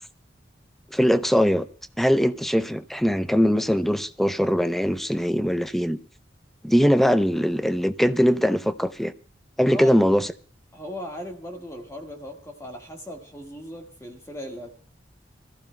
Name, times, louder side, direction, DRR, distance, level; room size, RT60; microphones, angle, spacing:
voice 1, 0.9-1.7 2.0-6.0 6.6-9.1 9.6-10.3, equal, ahead, 0.5 m, -21 dB
voice 2, 9.6-9.9 10.7-14.7, equal, 15° left, 1.6 m, -38 dB
24.5 x 14.5 x 2.2 m
head